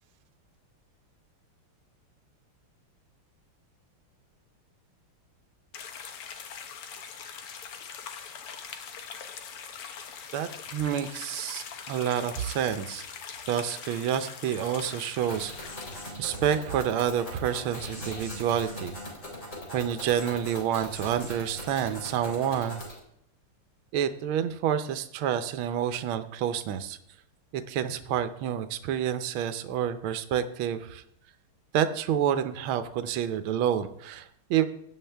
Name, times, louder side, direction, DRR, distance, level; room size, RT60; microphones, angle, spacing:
sound 1, 5.7-16.1, left 7 dB, 85° left, 2.0 m, -42 dB
voice 1, 10.3-13.0 13.5-15.5 16.2-19.0 19.7-22.8 23.9-27.0 27.5-31.0 31.7-34.6, right 9 dB, 75° right, 10 dB, 1.6 m, -28 dB
sound 2, 15.2-23.0, left 1 dB, 35° left, 3.8 m, -40 dB
16.5 x 9.6 x 3.4 m, 0.70 s
omnidirectional pair, 2.4 m